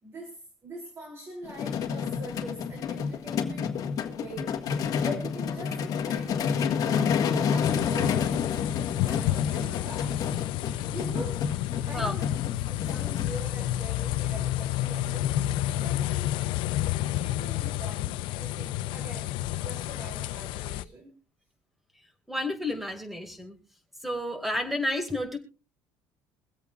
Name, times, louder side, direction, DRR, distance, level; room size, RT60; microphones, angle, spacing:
voice 1, 0.0-3.8 4.1-4.7 5.0-10.2 10.9-12.3 12.7-16.4 17.0-21.1, right 1 dB, 30° right, 3.1 m, -43 dB
sound 1, 1.4-13.4, left 7 dB, 40° left, 1.6 m, -29 dB
sound 2, 7.6-20.8, left 14 dB, 70° left, 0.5 m, -30 dB
voice 2, 22.3-23.6 24.0-25.4, left 1 dB, ahead, 2.2 m, -31 dB
23.5 x 8.1 x 2.4 m
cardioid pair, 140°, 9 cm